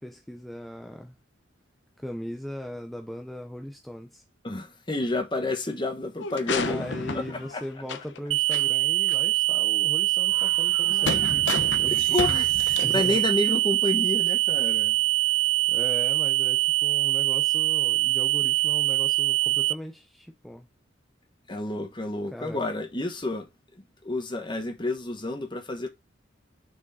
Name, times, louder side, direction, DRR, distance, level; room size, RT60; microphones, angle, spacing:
voice 1, 0.0-1.2 2.0-4.2 6.7-11.9 12.7-13.2 15.7-20.7 22.3-22.7, equal, ahead, 0.6 m, -39 dB
voice 2, 4.4-7.6 10.9-11.3 12.1-15.0 21.5-23.5 24.0-25.9, left 2 dB, 25° left, 1.3 m, -30 dB
sound 1, 6.2-8.2 8.5-8.6 9.1-9.2 10.3-13.3, left 4 dB, 60° left, 0.9 m, -33 dB
sound 2, 8.3-19.7, right 18 dB, 70° right, 0.4 m, -23 dB
6.4 x 4.8 x 4.1 m
head